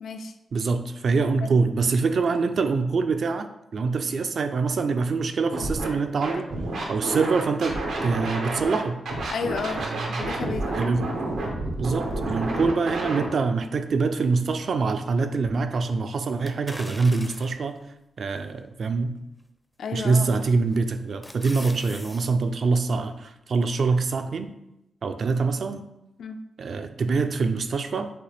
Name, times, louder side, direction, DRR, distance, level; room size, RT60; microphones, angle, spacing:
voice 1, 0.0-0.3 1.4-1.6 9.3-9.9 10.2-10.9 12.5-12.6 19.8-20.4 26.2-26.4, left 5 dB, 75° left, 7 dB, 0.4 m, -32 dB
voice 2, 0.5-6.5 6.9-9.0 9.8-10.3 10.7-11.0 11.8-17.8 18.2-19.1 19.9-24.5 25.0-25.9 26.6-28.1, right 4 dB, 55° right, 8 dB, 0.4 m, -25 dB
Scratching (performance technique), 5.5-5.9 6.2-8.8 9.0-13.2, right 2 dB, 85° right, 0.9 m, -29 dB
sound 1, 16.5-17.7 18.3-18.4 20.0-20.3 20.7-22.3 22.7-22.8, left 1 dB, 10° left, 0.4 m, -41 dB
6.5 x 2.4 x 3.3 m, 0.87 s
wide cardioid pair, 125°, 0 cm